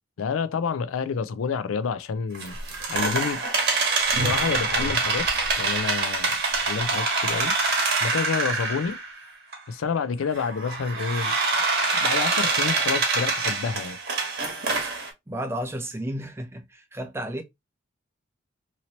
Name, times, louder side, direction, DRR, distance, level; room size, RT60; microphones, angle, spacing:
voice 1, 0.2-2.6 2.9-3.4 4.1-5.3 5.6-6.4 6.7-7.5 8.0-9.0 9.7-11.4 11.8-14.0, left 5 dB, 85° left, 0.4 m, -28 dB
sound 1, 2.3-9.1 9.5-9.6 10.4-15.1, right 3 dB, 50° right, 1.0 m, -25 dB
voice 2, 15.3-17.4, right 1 dB, 10° right, 0.4 m, -32 dB
2.9 x 2.7 x 2.8 m
head